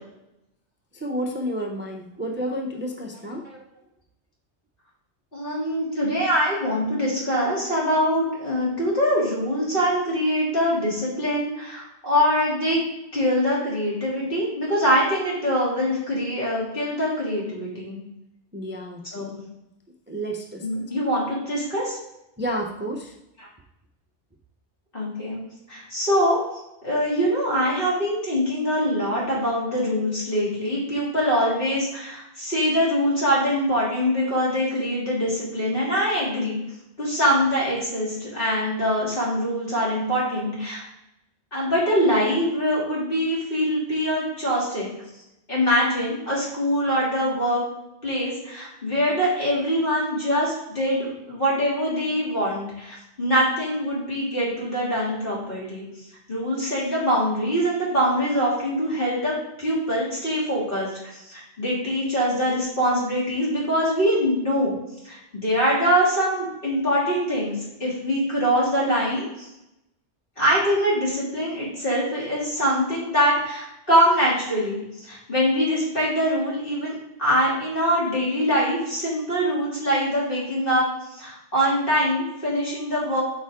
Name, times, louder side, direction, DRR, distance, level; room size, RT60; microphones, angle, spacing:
voice 1, 0.9-3.5 15.5-15.6 18.5-19.3 20.1-20.9 22.4-23.1, equal, 10° right, 0 dB, 0.6 m, -31 dB
voice 2, 5.3-12.8 13.1-18.0 19.1-19.4 20.6-22.0 23.4-23.5 24.9-25.4 25.7-26.4 26.8-36.6 37.0-40.8 41.5-44.9 45.5-47.6 48.0-55.8 56.3-64.8 65.0-69.5 70.4-83.2, equal, 50° left, -7 dB, 3.2 m, -23 dB
8.8 x 5.0 x 3.7 m, 0.88 s
omnidirectional pair, 1.2 m